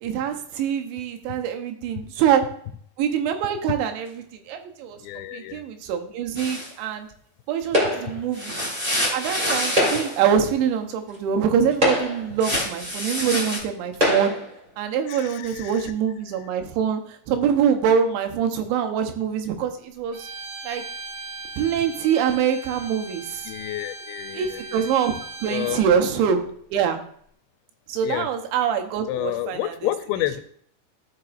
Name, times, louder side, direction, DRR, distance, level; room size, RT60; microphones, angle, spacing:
voice 1, 0.0-2.4 3.0-5.0 5.3-7.1 7.5-8.6 9.1-14.3 14.8-20.3 20.6-20.8 21.6-23.5 24.3-25.2 25.4-27.0 27.9-29.9, right 8 dB, 85° right, 5 dB, 3.2 m, -24 dB
voice 2, 5.0-5.6 15.1-15.7 23.5-24.8 25.5-25.8 28.0-28.3 29.1-30.4, left 14 dB, 85° left, 10 dB, 2.8 m, -29 dB
sound 1, 6.3-6.7 8.3-10.3 12.4-13.6, equal, 5° right, 1.1 m, -27 dB
sound 2, 7.7-8.3 9.6-10.3 11.1-11.2 11.7-12.4 13.3-13.4 13.9-14.5, left 1 dB, 45° right, 0.5 m, -23 dB
Bowed string instrument, 20.1-25.9, right 2 dB, 65° right, 1.6 m, -38 dB
14.5 x 5.9 x 2.5 m, 0.62 s
omnidirectional pair, 5.1 m